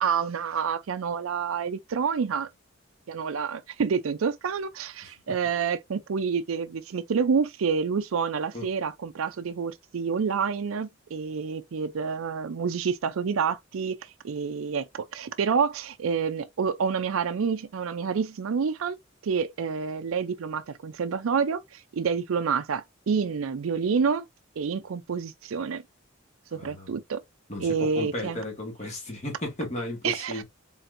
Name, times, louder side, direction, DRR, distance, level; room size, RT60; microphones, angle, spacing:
voice 1, 0.0-2.5 3.1-14.0 14.2-19.0 19.2-24.3 24.6-25.8 26.5-27.2 27.6-28.4 30.0-30.4, right 6 dB, 80° right, 0.4 m, -28 dB
voice 2, 26.6-26.9 27.5-30.4, left 1 dB, 35° left, 1.8 m, -34 dB
4.2 x 3.9 x 2.5 m
head